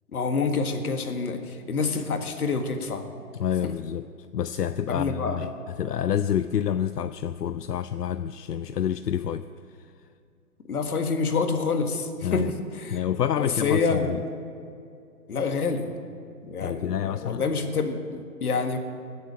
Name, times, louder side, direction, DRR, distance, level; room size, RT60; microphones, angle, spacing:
voice 1, 0.1-3.0 3.6-3.7 4.9-5.5 10.7-12.5 12.8-13.0 13.4-14.2 15.3-16.0 16.5-18.8, left 4 dB, 70° left, 6 dB, 1.9 m, -27 dB
voice 2, 3.3-4.1 4.3-9.4 12.2-12.5 12.9-14.2 16.6-17.4, left 9 dB, 90° left, 11 dB, 0.6 m, -28 dB
20.5 x 7.9 x 6.4 m, 2.5 s
hypercardioid pair, 145°, 46 cm